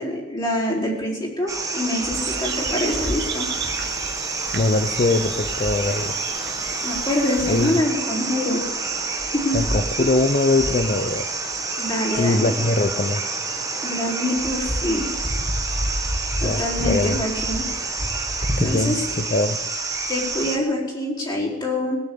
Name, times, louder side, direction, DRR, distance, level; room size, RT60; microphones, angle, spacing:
voice 1, 0.0-3.5 6.8-8.6 9.3-9.6 10.0-10.1 11.8-12.6 13.8-15.1 16.0-17.6 18.6-19.0 20.1-22.0, left 1 dB, 25° left, -5 dB, 4.2 m, -25 dB
sound 1, 1.5-20.6, right 3 dB, 15° right, 1.4 m, -27 dB
sound 2, 2.1-7.8, right 7 dB, 60° right, 1.1 m, -36 dB
voice 2, 4.5-6.2 7.5-7.7 9.5-11.3 12.2-13.2 16.4-17.2 18.5-19.6, left 2 dB, 40° left, 9 dB, 0.5 m, -22 dB
20.0 x 7.1 x 7.7 m, 1.3 s
head